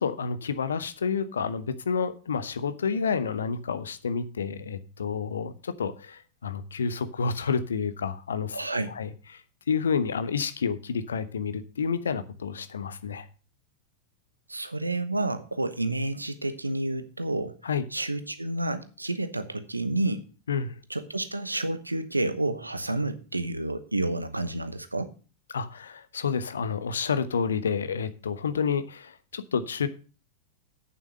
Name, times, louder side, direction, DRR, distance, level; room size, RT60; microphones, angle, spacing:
voice 1, 0.0-8.6 8.9-9.4 9.7-13.3 17.6-17.8 20.5-20.7 25.5-29.9, left 6 dB, 70° left, 13 dB, 0.9 m, -29 dB
voice 2, 8.5-8.9 14.5-17.5 17.9-20.2 20.9-25.1, right 2 dB, 85° right, 11 dB, 1.0 m, -30 dB
8.9 x 7.0 x 6.3 m, 0.35 s
figure-of-eight pair, 90°, 0 cm